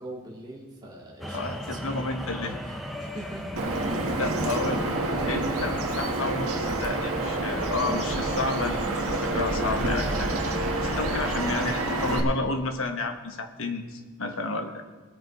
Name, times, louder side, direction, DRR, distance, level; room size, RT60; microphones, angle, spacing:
voice 1, 0.0-3.5 3.9-4.7 11.4-11.7, right 1 dB, 20° right, -3 dB, 2.1 m, -41 dB
sound 1, 1.2-11.8, equal, ahead, 0.7 m, -38 dB
voice 2, 1.3-2.6 4.2-4.8 5.3-10.4 10.8-14.8, left 3 dB, 65° left, 5 dB, 1.2 m, -31 dB
Bird vocalization bird call bird song, 3.6-12.2, right 2 dB, 85° right, 1.5 m, -28 dB
19.0 x 6.8 x 4.8 m, 1.4 s
head